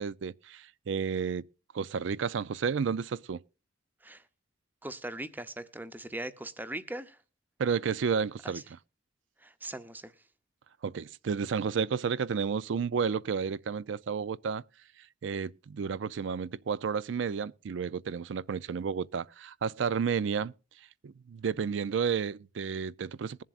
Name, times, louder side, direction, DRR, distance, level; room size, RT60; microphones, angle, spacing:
voice 1, 0.0-1.5 1.7-3.4 7.6-8.6 10.8-14.6 15.2-20.5 21.0-23.4, right 6 dB, 70° right, 0.4 m, -31 dB
voice 2, 4.8-7.2 8.4-8.6 9.4-10.1, right 1 dB, 10° right, 0.6 m, -40 dB
21.0 x 7.4 x 2.4 m
head